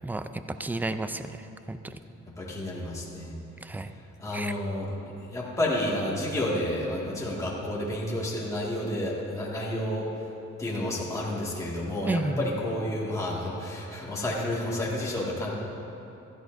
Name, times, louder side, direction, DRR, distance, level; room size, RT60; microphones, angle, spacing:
voice 1, 0.0-2.0 3.6-3.9 4.3-4.5 12.1-12.5, right 2 dB, 5° right, 10 dB, 0.4 m, -32 dB
voice 2, 2.4-3.4 4.2-4.9 5.3-10.1 10.6-15.5, left 1 dB, 10° left, -5 dB, 2.0 m, -30 dB
16.0 x 13.0 x 2.7 m, 2.9 s
cardioid pair, 90°, 30 cm